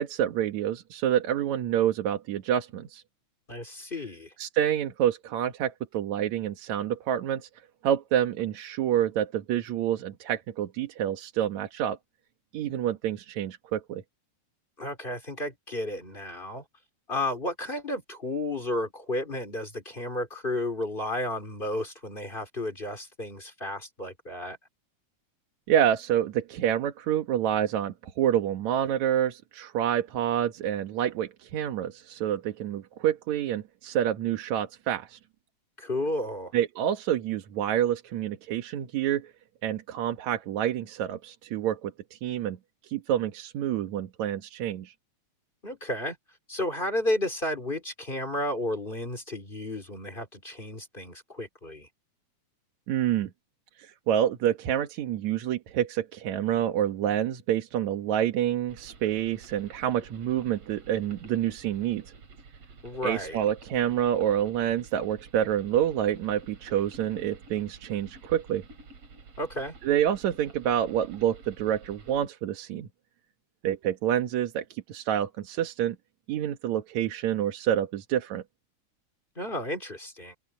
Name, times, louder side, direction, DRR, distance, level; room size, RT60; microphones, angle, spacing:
voice 1, 0.0-3.0 4.4-7.5 7.8-12.0 12.5-14.0 25.7-35.2 36.5-39.3 39.6-42.6 42.8-44.9 52.9-53.3 53.8-62.1 63.0-68.6 69.8-72.9 73.6-76.0 76.3-78.4, right 10 dB, 70° right, 2.6 m, -28 dB
voice 2, 3.5-4.3 14.8-16.6 17.1-24.6 35.8-36.5 45.6-46.2 46.5-51.9 62.8-63.4 69.4-69.7 79.4-80.3, left 1 dB, 15° left, 2.8 m, -32 dB
sound 1, 58.7-72.3, right 4 dB, 55° right, 3.7 m, -50 dB
omnidirectional pair, 3.5 m